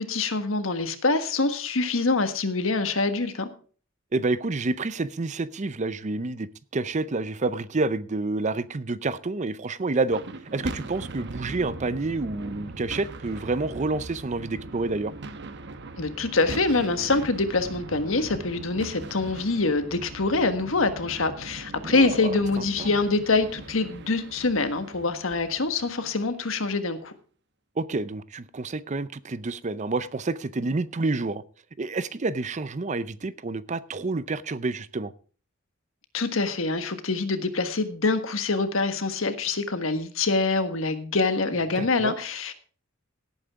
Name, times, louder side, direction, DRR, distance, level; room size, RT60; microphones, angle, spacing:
voice 1, 0.0-3.5 16.0-27.1 36.1-42.5, left 3 dB, 75° left, 1.5 m, -25 dB
voice 2, 4.1-10.2 10.5-15.1 21.8-22.9 27.8-31.4 31.8-35.1 41.8-42.1, right 3 dB, 35° right, 0.6 m, -29 dB
sound 1, 10.1-26.4, right 2 dB, 60° right, 1.0 m, -40 dB
17.5 x 8.9 x 3.6 m
head